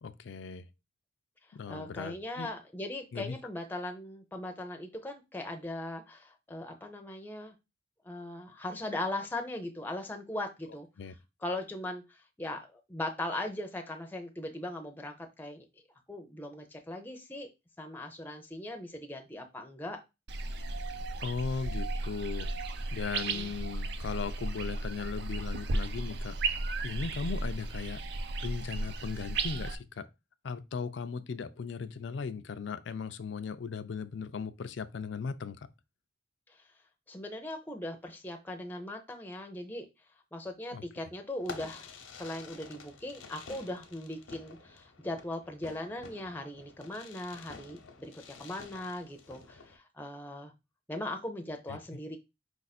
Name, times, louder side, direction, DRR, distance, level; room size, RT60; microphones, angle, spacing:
voice 1, 0.0-0.7 1.5-2.5 3.1-3.4 11.0-11.1 21.2-22.5 22.9-26.4 26.8-28.0 28.4-30.1 30.4-35.6 40.7-40.8 51.7-51.8, left 5 dB, 60° left, 0.4 m, -37 dB
voice 2, 1.6-7.5 8.0-10.9 11.4-15.7 16.1-17.5 17.8-20.0 23.3-23.5 37.1-39.9 40.3-41.9 42.1-48.1 48.4-50.5 50.9-52.2, left 1 dB, 10° left, 0.6 m, -39 dB
sound 1, 20.3-29.7, right 2 dB, 55° right, 0.5 m, -35 dB
Fireworks, 41.4-49.8, left 4 dB, 85° left, 0.8 m, -50 dB
4.9 x 2.5 x 4.1 m
head